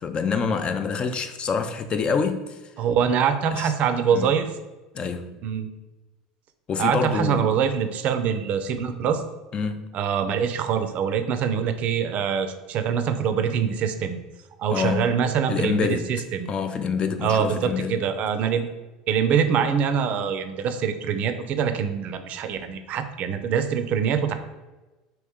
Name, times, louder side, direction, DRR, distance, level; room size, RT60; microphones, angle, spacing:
voice 1, 0.0-2.6 3.6-3.7 4.1-4.3 4.9-5.4 6.7-7.5 9.5-9.9 14.7-15.1 15.5-16.1 16.5-18.0, left 5 dB, 35° left, 0.4 m, -26 dB
voice 2, 2.8-4.5 5.4-5.7 6.8-9.2 9.9-14.2 14.6-16.5 17.2-18.7 19.1-24.3, right 7 dB, 50° right, 0.4 m, -24 dB
3.0 x 2.9 x 3.5 m
hypercardioid pair, 80°, 3 cm